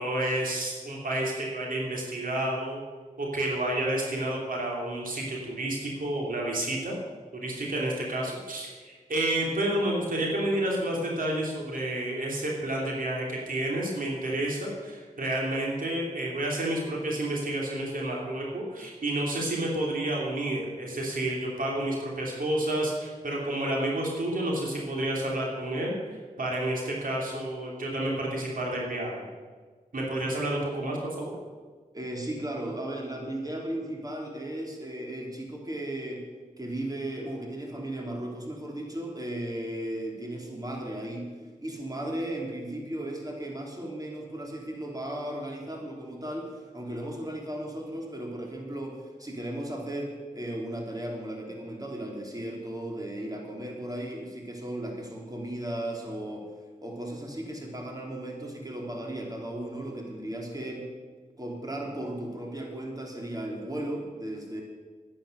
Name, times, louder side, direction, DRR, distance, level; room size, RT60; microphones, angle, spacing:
voice 1, 0.0-2.8 3.2-6.9 7.3-29.3 29.9-31.3, right 1 dB, 75° right, -2 dB, 3.1 m, -30 dB
voice 2, 31.9-36.2 36.6-41.3 41.6-56.5 56.8-60.8 61.4-64.6, right 1 dB, 25° right, 0 dB, 3.4 m, -36 dB
12.0 x 10.5 x 6.6 m, 1.5 s
cardioid pair, 50°, 14 cm